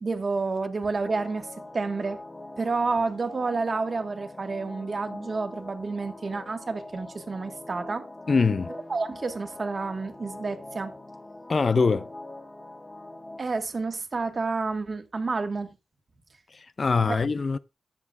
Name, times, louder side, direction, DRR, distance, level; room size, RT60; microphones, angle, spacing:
voice 1, 0.0-2.2 2.6-8.1 8.9-10.9 13.4-15.7 17.1-17.2, right 4 dB, 40° right, 1.5 m, -29 dB
sound 1, 1.0-13.4, left 2 dB, 15° left, 1.5 m, -43 dB
voice 2, 8.3-8.7 11.5-12.1 16.5-17.6, left 4 dB, 40° left, 0.4 m, -23 dB
14.0 x 9.7 x 2.4 m
wide cardioid pair, 135°, 0 cm